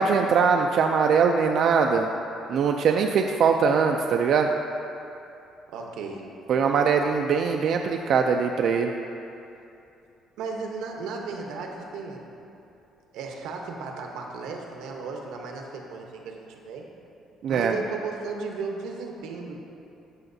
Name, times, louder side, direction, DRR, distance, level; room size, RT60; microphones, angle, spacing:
voice 1, 0.0-2.1 2.5-4.5 6.5-8.9 17.4-17.7, right 6 dB, 55° right, 3 dB, 0.3 m, -22 dB
voice 2, 5.7-6.3 10.4-12.3 13.1-16.9 17.5-19.6, right 4 dB, 90° right, 1 dB, 0.9 m, -35 dB
13.5 x 5.8 x 2.7 m, 2.8 s
cardioid pair, 140°, 0 cm